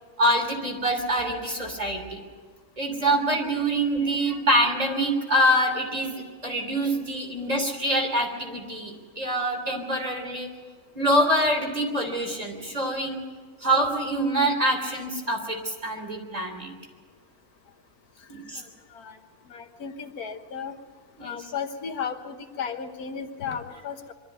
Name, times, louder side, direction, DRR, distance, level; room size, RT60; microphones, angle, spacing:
voice 1, 0.2-2.2 2.8-10.5 10.9-13.2 13.6-16.7 18.3-18.6 21.2-21.5, right 1 dB, 25° right, 2 dB, 3.3 m, -25 dB
voice 2, 19.5-20.7 21.2-24.1, left 6 dB, 85° left, 7 dB, 1.7 m, -34 dB
23.0 x 13.5 x 9.2 m, 1.5 s
omnidirectional pair, 1.5 m